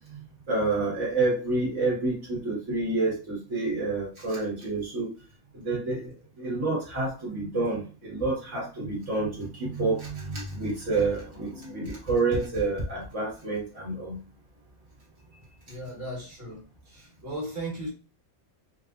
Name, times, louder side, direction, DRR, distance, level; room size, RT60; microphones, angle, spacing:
voice 1, 0.5-5.1 5.5-14.2, right 3 dB, 90° right, -5 dB, 1.8 m, -28 dB
voice 2, 15.7-16.6 16.9-17.9, right 1 dB, 55° right, -4 dB, 1.7 m, -36 dB
4.1 x 2.5 x 2.4 m, 0.35 s
omnidirectional pair, 1.2 m